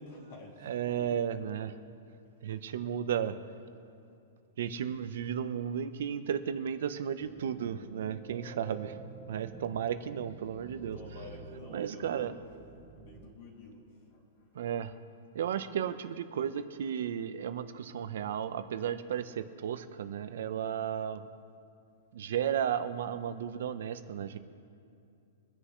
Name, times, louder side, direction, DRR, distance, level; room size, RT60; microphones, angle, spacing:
voice 1, 0.0-0.8 9.4-9.6 10.9-12.4 12.9-13.8 14.1-14.4, left 2 dB, 45° left, -2 dB, 2.8 m, -50 dB
voice 2, 0.7-1.7 2.4-3.3 4.6-8.9 9.3-11.0 11.7-12.3 14.6-14.9 15.3-21.2 22.1-24.4, right 9 dB, 65° right, 11 dB, 0.9 m, -34 dB
sound 1, 7.2-13.3, right 5 dB, 20° right, 1.1 m, -49 dB
24.5 x 10.0 x 3.2 m, 2.5 s
hypercardioid pair, 165°, 0 cm